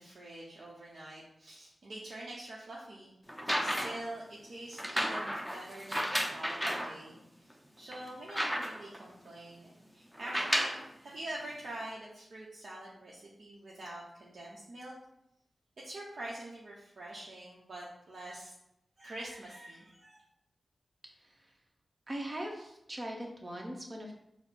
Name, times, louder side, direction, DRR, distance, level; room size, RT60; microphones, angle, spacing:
voice 1, 0.0-3.3 3.6-14.9 15.8-18.6 19.0-20.2, right 1 dB, 70° right, -5 dB, 0.7 m, -45 dB
sound 1, 3.3-4.1 4.8-6.9 7.5-7.6 7.9-9.0 10.1-10.9 11.8-11.9, equal, 5° right, 0.7 m, -33 dB
voice 2, 21.0-21.5 22.1-24.1, right 1 dB, 40° right, 1 dB, 0.9 m, -41 dB
4.2 x 2.0 x 4.1 m, 0.80 s
cardioid pair, 40°, 0 cm